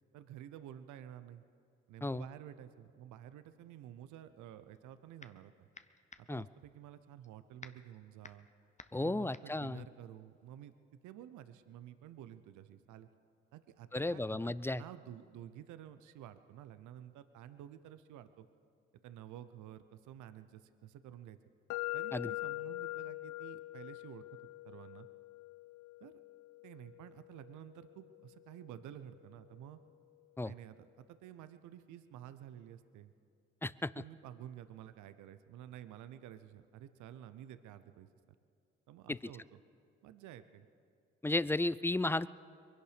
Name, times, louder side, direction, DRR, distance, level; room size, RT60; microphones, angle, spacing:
voice 1, 0.1-1.4 1.9-5.7 6.2-8.5 9.0-10.7 11.0-13.1 13.5-18.5 19.0-21.4 21.9-24.4 24.6-25.1 26.0-26.2 26.6-29.8 30.4-33.1 34.0-38.1 38.9-39.6 40.0-40.7, right 11 dB, 80° right, 12 dB, 0.7 m, -51 dB
sound 1, 4.7-5.5 5.7-10.8, left 4 dB, 25° left, 0.9 m, -56 dB
voice 2, 8.9-9.9 13.9-14.8 22.1-22.3 30.4-30.5 33.6-33.9 39.1-39.2 41.2-42.3, left 2 dB, 10° left, 18 dB, 0.4 m, -34 dB
sound 2, 21.7-29.6, left 20 dB, 80° left, 0.5 m, -44 dB
23.0 x 11.0 x 5.1 m, 2.4 s
hypercardioid pair, 45°, 30 cm